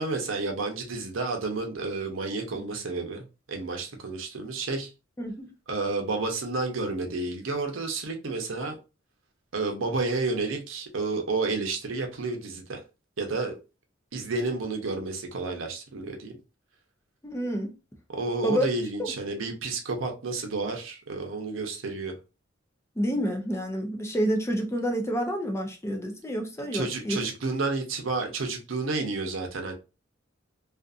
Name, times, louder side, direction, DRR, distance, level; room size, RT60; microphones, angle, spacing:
voice 1, 0.0-4.9 5.7-8.8 9.5-12.8 13.2-13.5 14.1-16.4 18.1-22.1 26.7-29.7, right 3 dB, 85° right, 0.7 m, -30 dB
voice 2, 17.2-17.7 18.4-18.6 23.0-27.2, equal, 15° left, 0.5 m, -28 dB
2.5 x 2.4 x 2.4 m
head